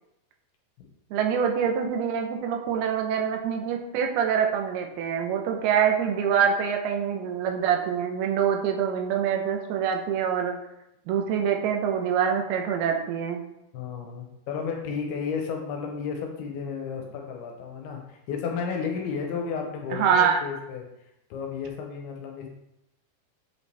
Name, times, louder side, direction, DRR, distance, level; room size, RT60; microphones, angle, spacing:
voice 1, 1.1-10.5 11.1-13.4 19.9-20.4, right 7 dB, 75° right, 3 dB, 2.6 m, -25 dB
voice 2, 13.7-20.8 21.3-22.6, left 6 dB, 75° left, 2 dB, 2.6 m, -33 dB
7.2 x 5.4 x 3.3 m, 0.86 s
omnidirectional pair, 4.8 m